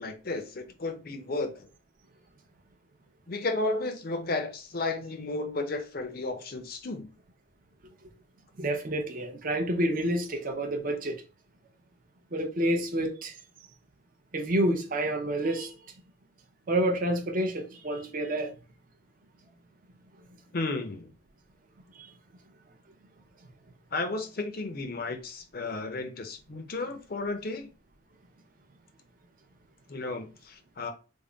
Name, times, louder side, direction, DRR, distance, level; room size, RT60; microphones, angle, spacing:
voice 1, 0.0-1.7 3.3-7.1 20.5-21.1 23.9-27.7 29.9-30.9, left 2 dB, 45° left, 0.6 m, -33 dB
voice 2, 8.6-11.2 12.3-13.3 14.3-15.7 16.7-18.5, right 1 dB, 40° right, 0.6 m, -28 dB
3.5 x 2.0 x 3.8 m
head